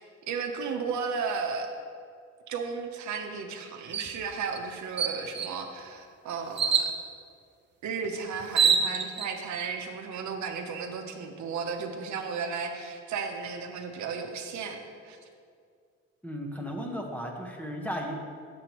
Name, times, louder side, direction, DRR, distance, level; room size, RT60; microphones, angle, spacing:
voice 1, 0.3-1.7 2.5-6.9 7.8-14.8 15.0-15.2, right 5 dB, 70° right, 4 dB, 0.7 m, -34 dB
sound 1, 3.9-4.1 4.6-4.7 5.0-5.6 6.6-6.9 8.0-8.1 8.4-9.3, right 6 dB, 35° right, 0.6 m, -25 dB
voice 2, 16.2-18.1, equal, 5° left, 1 dB, 0.9 m, -35 dB
7.4 x 6.9 x 3.0 m, 2.2 s
cardioid pair, 90°, 30 cm